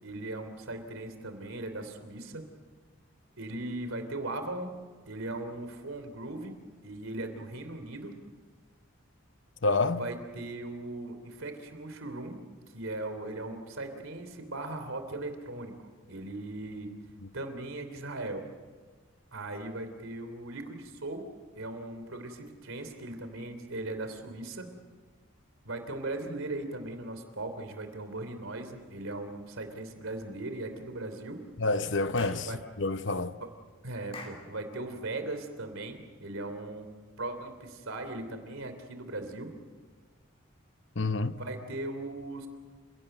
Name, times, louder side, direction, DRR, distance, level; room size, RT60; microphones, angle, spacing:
voice 1, 0.0-2.4 3.4-4.8 5.1-8.1 9.9-12.4 12.7-15.7 16.1-16.9 17.3-18.4 19.3-21.2 21.5-24.7 25.6-31.4 32.4-32.6 33.4-33.5 33.8-36.9 37.2-39.5 41.3-42.5, right 2 dB, 75° right, 3.1 m, -38 dB
voice 2, 9.6-10.0 31.6-32.5 32.8-33.4 41.0-41.4, left 3 dB, 60° left, 0.8 m, -28 dB
Clapping / Chirp tweet, 32.2-32.5 34.1-34.5, left 3 dB, 25° left, 3.2 m, -44 dB
29.5 x 17.0 x 7.9 m
head